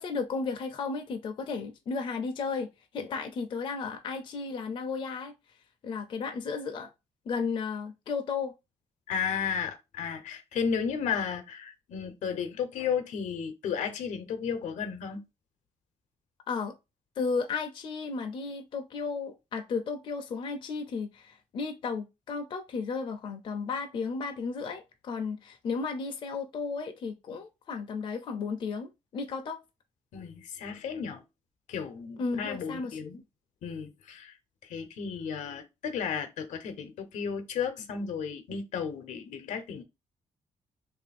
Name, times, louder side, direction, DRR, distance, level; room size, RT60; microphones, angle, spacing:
voice 1, 0.0-2.7 2.9-5.3 5.8-6.9 7.3-8.5 16.5-16.7 17.2-29.6 32.2-33.2, left 4 dB, 45° left, 0.5 m, -34 dB
voice 2, 9.1-15.2 30.1-31.2 31.7-33.2 33.6-34.4 34.6-39.8, left 6 dB, 80° left, 0.8 m, -33 dB
3.1 x 2.7 x 4.1 m
cardioid pair, 170°, 12 cm